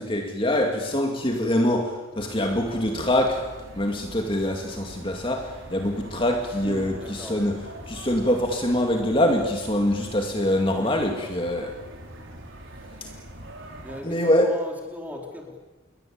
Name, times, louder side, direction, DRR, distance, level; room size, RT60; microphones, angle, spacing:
voice 1, 0.0-3.5 3.8-11.8 13.0-13.1 14.0-14.5, left 1 dB, 25° left, 2.4 m, -24 dB
sound 1, 2.2-14.0, right 1 dB, 70° right, 5.5 m, -43 dB
voice 2, 6.6-7.5 10.6-11.7 13.8-15.6, left 1 dB, 10° right, 4.7 m, -39 dB
29.5 x 22.5 x 8.8 m
head